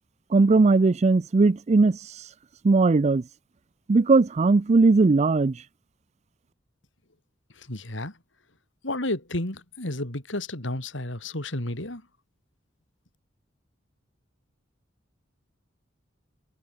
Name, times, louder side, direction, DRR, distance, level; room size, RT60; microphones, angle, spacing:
voice 1, 0.3-2.0 2.6-3.2 3.9-5.6, right 3 dB, 35° right, 0.4 m, -19 dB
voice 2, 7.6-8.2 8.8-12.0, left 1 dB, 75° left, 4.2 m, -32 dB
head